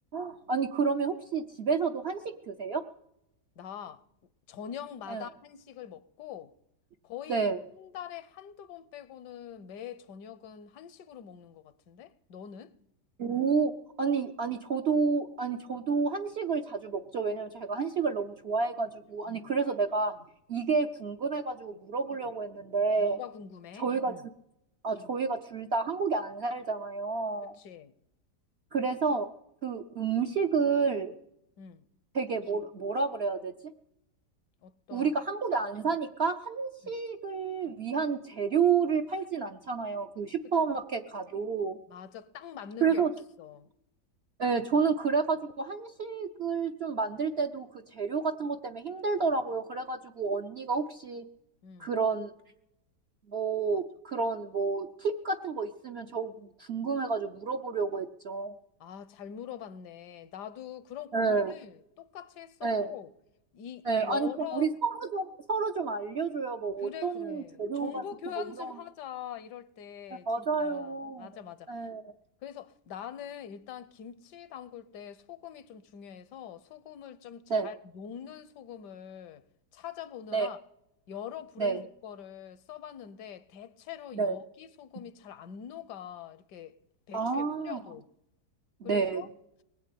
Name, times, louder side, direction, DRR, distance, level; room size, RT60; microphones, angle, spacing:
voice 1, 0.1-2.8 5.1-5.3 7.3-7.6 13.2-13.7 14.0-20.1 20.5-23.2 23.8-24.1 24.8-27.5 28.7-29.3 29.6-31.1 32.1-33.5 34.9-41.8 42.8-43.1 44.4-51.2 51.8-52.3 53.3-58.6 61.1-61.5 62.6-62.9 63.9-68.0 68.4-68.7 70.3-71.3 71.7-72.0 77.5-77.7 80.3-80.5 81.6-81.8 84.1-84.4 87.1-87.8 88.8-89.2, right 5 dB, 55° right, 0.7 m, -30 dB
voice 2, 3.6-4.0 4.5-6.5 7.0-12.7 19.3-19.5 22.1-22.2 23.0-24.3 27.4-27.9 31.6-31.8 34.6-35.1 36.8-37.0 41.9-43.1 43.4-43.7 51.6-51.9 58.8-63.1 63.5-64.7 66.8-71.9 72.4-79.4 79.7-80.6 81.1-86.7 87.1-88.1 88.8-89.3, left 9 dB, 75° left, 1.3 m, -44 dB
20.0 x 8.3 x 8.4 m
omnidirectional pair, 1.8 m